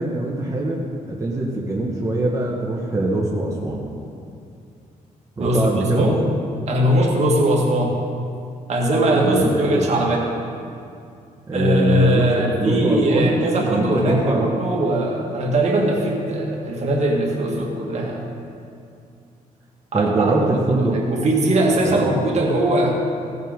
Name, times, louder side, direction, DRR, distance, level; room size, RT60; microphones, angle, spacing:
voice 1, 0.0-3.8 5.4-6.1 9.2-10.0 11.5-12.3 12.6-13.4 13.7-14.5 19.9-21.0 21.8-22.1, right 2 dB, 25° right, -3 dB, 1.4 m, -22 dB
voice 2, 5.4-6.3 6.7-8.0 8.7-10.3 11.5-18.4 19.9-23.0, right 1 dB, 50° right, -1 dB, 2.0 m, -20 dB
16.5 x 6.5 x 5.3 m, 2.5 s
cardioid pair, 110°, 14 cm